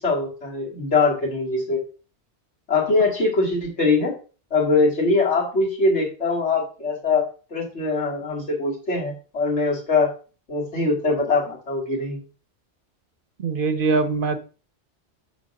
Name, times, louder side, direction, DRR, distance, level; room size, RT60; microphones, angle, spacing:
voice 1, 0.0-1.8 2.7-4.1 4.5-7.3 7.5-10.1 10.5-12.2, left 3 dB, 75° left, -2 dB, 3.0 m, -22 dB
voice 2, 13.4-14.4, right 4 dB, 55° right, 10 dB, 0.8 m, -22 dB
7.1 x 3.6 x 6.3 m, 0.36 s
omnidirectional pair, 1.2 m